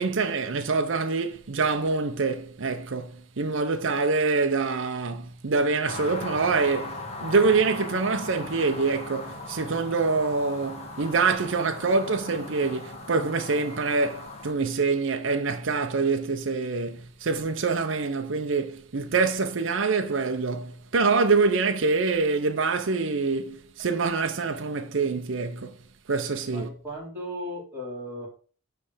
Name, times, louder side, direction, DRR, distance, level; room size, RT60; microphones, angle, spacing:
voice 1, 0.0-25.8 26.1-26.7, right 4 dB, 70° right, 0.7 m, -25 dB
sound 1, 5.9-14.5, left 2 dB, 30° left, 1.2 m, -39 dB
voice 2, 26.5-28.3, equal, 10° right, 3.4 m, -36 dB
9.8 x 3.3 x 5.0 m
head